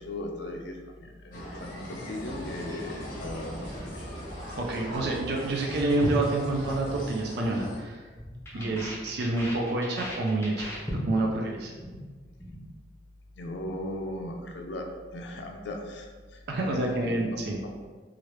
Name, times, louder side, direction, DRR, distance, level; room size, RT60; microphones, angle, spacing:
voice 1, 0.0-4.0 8.5-8.8 13.3-17.9, left 1 dB, 70° left, 3 dB, 0.4 m, -38 dB
sound 1, 1.3-7.8, equal, 50° left, 0.8 m, -41 dB
sound 2, 2.0-7.0, equal, 80° right, 1.1 m, -42 dB
voice 2, 4.6-8.1 8.5-10.7 11.1-11.7 16.5-17.6, right 2 dB, 60° right, -1 dB, 0.4 m, -28 dB
sound 3, 6.0-7.1 7.4-7.7 8.0-11.4 11.6-12.0 12.2-12.6, equal, 15° left, 0.6 m, -37 dB
3.1 x 2.4 x 3.0 m, 1.4 s
head